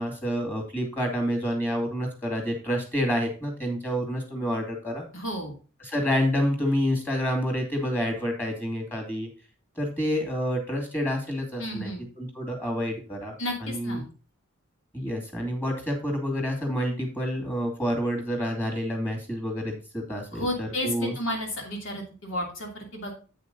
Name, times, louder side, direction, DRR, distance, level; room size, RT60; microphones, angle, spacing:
voice 1, 0.0-5.1 5.8-9.3 9.8-14.0 14.9-21.1, equal, 10° left, 2 dB, 2.4 m, -28 dB
voice 2, 5.1-5.5 11.6-12.0 13.4-14.1 20.3-23.1, left 1 dB, 65° left, 1 dB, 2.7 m, -32 dB
8.7 x 5.9 x 4.0 m, 0.35 s
head